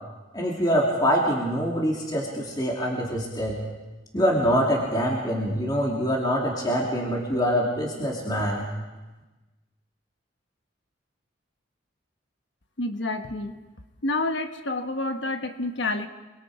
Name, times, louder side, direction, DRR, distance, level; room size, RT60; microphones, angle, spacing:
voice 1, 0.3-3.6 4.1-8.7, equal, 20° left, -3 dB, 2.9 m, -24 dB
voice 2, 12.8-13.6 14.0-16.1, left 2 dB, 65° left, 7 dB, 1.3 m, -28 dB
29.0 x 22.0 x 4.9 m, 1.2 s
head